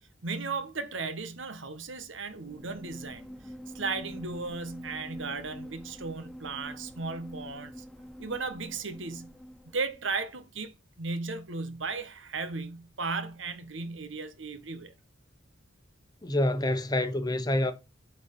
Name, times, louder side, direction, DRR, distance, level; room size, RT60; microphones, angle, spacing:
voice 1, 0.2-3.3 3.7-7.8 8.2-9.3 9.7-14.9, right 4 dB, 70° right, 1.4 m, -35 dB
sound 1, 2.3-10.1, equal, ahead, 0.5 m, -46 dB
voice 2, 16.2-17.7, left 1 dB, 20° left, 1.0 m, -27 dB
8.2 x 4.5 x 5.5 m
head